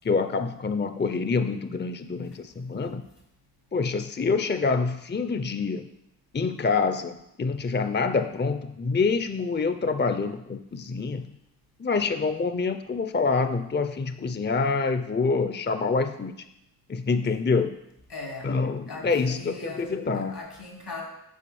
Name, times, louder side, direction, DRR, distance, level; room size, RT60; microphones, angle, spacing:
voice 1, 0.0-3.0 3.7-5.9 6.3-11.3 11.8-16.3 16.9-17.7 18.4-20.3, left 4 dB, 30° left, 10 dB, 0.5 m, -26 dB
voice 2, 18.1-18.6 18.9-21.0, left 3 dB, 85° left, 0 dB, 2.7 m, -40 dB
8.5 x 4.9 x 6.9 m, 0.82 s
cardioid pair, 40°, 39 cm